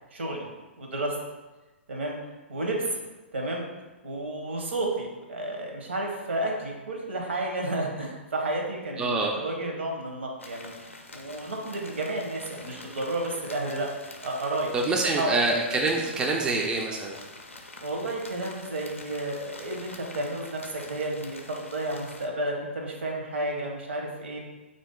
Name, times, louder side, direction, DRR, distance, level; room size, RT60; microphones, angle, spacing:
voice 1, 0.1-0.5 0.8-1.1 1.9-2.1 2.5-3.0 3.3-3.6 4.0-9.1 9.4-10.7 11.1-13.9 14.2-14.7 15.2-15.3 17.8-24.4, right 2 dB, 70° right, 1 dB, 0.8 m, -31 dB
voice 2, 9.0-9.4 14.7-17.2, right 3 dB, 10° right, 0 dB, 0.4 m, -25 dB
sound 1, 10.4-22.3, left 2 dB, 85° left, 0.5 m, -46 dB
3.6 x 2.6 x 3.6 m, 1.1 s
figure-of-eight pair, 115°, 7 cm